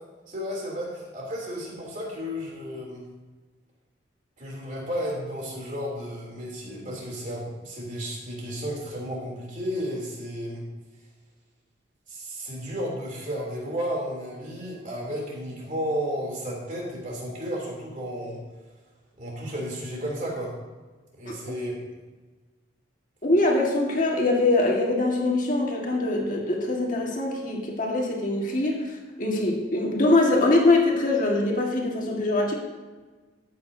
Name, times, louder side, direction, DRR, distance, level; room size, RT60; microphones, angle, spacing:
voice 1, 0.3-3.0 4.4-10.6 12.1-18.4 19.2-20.5 21.1-21.8, equal, 40° right, -3 dB, 3.1 m, -33 dB
voice 2, 23.2-28.8 29.2-32.5, left 2 dB, 45° left, -1 dB, 1.8 m, -23 dB
14.0 x 8.7 x 2.8 m, 1.3 s
head